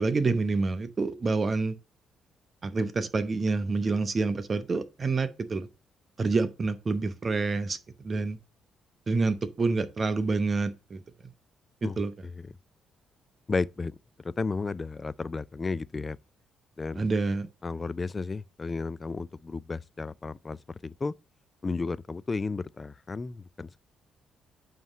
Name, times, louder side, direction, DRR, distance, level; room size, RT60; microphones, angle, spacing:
voice 1, 0.0-1.7 2.6-5.7 6.2-7.8 8.0-8.4 9.1-11.0 11.8-12.1 16.9-17.5, right 3 dB, 35° right, 0.8 m, -27 dB
voice 2, 11.8-12.3 13.5-14.0 14.2-16.2 16.8-17.1 17.6-20.6 20.8-21.1 21.6-23.8, left 4 dB, 30° left, 0.3 m, -33 dB
9.2 x 3.1 x 5.4 m
cardioid pair, 90°, 0 cm